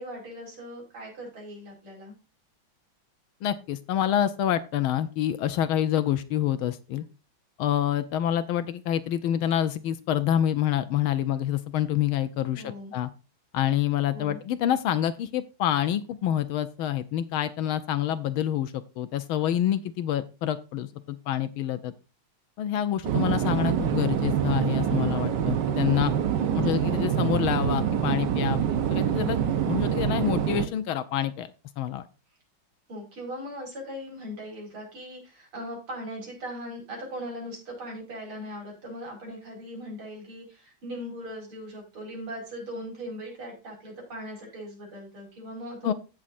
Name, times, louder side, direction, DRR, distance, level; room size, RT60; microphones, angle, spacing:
voice 1, 0.0-2.1 12.5-12.9 14.1-14.4 26.4-26.7 32.9-45.9, equal, 80° right, 0 dB, 5.9 m, -39 dB
voice 2, 3.4-7.0 7.6-13.1 13.5-21.9 22.6-26.1 26.5-28.6 28.9-29.4 29.7-31.5 31.8-32.1 45.8-45.9, left 11 dB, 80° left, 11 dB, 1.6 m, -27 dB
sound 1, 23.0-30.7, right 9 dB, 60° right, 1.4 m, -25 dB
16.0 x 6.2 x 2.6 m, 0.30 s
omnidirectional pair, 2.3 m